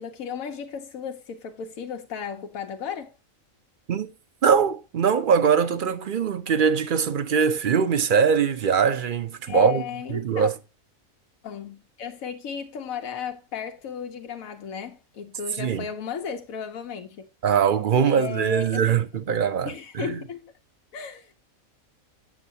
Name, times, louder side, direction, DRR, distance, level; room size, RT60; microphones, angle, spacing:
voice 1, 0.0-3.1 9.5-10.5 11.4-17.2 18.1-18.9 19.6-20.5 20.9-21.3, left 7 dB, 85° left, 1.2 m, -34 dB
voice 2, 4.4-9.8 10.1-10.6 15.6-15.9 17.4-20.2, right 7 dB, 50° right, 0.7 m, -22 dB
8.5 x 7.2 x 2.7 m
omnidirectional pair, 1.4 m